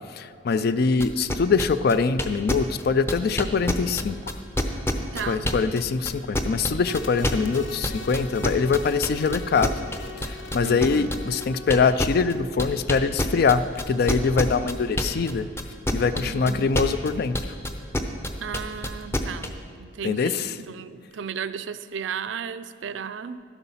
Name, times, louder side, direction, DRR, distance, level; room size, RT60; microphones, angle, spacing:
voice 1, 0.1-4.2 5.3-9.7 10.2-15.5 15.9-17.4 20.0-20.6, left 5 dB, 50° left, 14 dB, 0.4 m, -23 dB
sound 1, 1.0-5.8 6.0-15.3 15.6-19.5, left 1 dB, 15° left, 0.7 m, -26 dB
voice 2, 5.1-5.5 10.6-11.2 16.2-16.7 18.4-23.4, right 7 dB, 65° right, 13 dB, 0.4 m, -35 dB
sound 2, 6.8-12.2, left 3 dB, 75° left, 0.9 m, -41 dB
12.0 x 8.1 x 5.6 m, 2.3 s
head